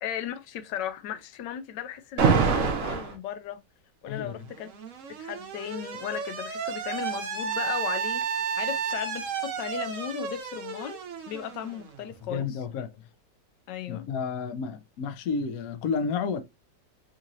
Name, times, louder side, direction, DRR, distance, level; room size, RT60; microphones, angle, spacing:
voice 1, 0.0-3.6 4.0-4.7 5.1-12.6 13.7-14.1, left 9 dB, 85° left, 1.2 m, -36 dB
Alarm, 2.2-3.1 4.4-12.1, right 6 dB, 55° right, 1.0 m, -29 dB
voice 2, 4.1-4.4 12.3-12.9 13.9-16.4, left 5 dB, 65° left, 0.9 m, -31 dB
3.7 x 3.0 x 2.6 m
omnidirectional pair, 1.9 m